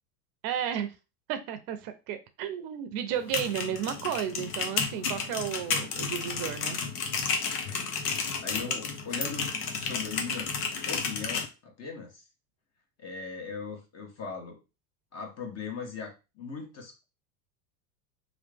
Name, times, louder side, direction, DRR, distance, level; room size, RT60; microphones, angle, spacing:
voice 1, 0.4-0.9 1.3-6.8 7.9-8.1, right 9 dB, 50° right, 9 dB, 0.6 m, -33 dB
sound 1, 3.1-11.5, left 5 dB, 85° left, 0.9 m, -32 dB
voice 2, 7.7-8.0 8.4-9.5 9.8-10.5 10.9-12.2 13.0-14.6 15.1-17.0, left 5 dB, 35° left, 2 dB, 1.3 m, -39 dB
3.0 x 2.5 x 3.4 m, 0.29 s
hypercardioid pair, 95°, 45 cm